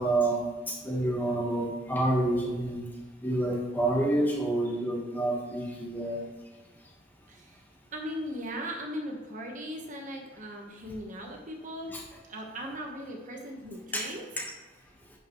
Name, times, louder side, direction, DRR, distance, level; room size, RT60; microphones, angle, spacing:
voice 1, 0.0-2.9 3.2-6.3 11.9-12.0 13.9-14.0 14.4-14.5, right 1 dB, 10° left, -2 dB, 1.3 m, -28 dB
voice 2, 7.3-7.6 7.9-11.9 12.3-14.2, equal, 45° right, 1 dB, 1.2 m, -38 dB
11.0 x 5.3 x 3.1 m, 1.3 s
head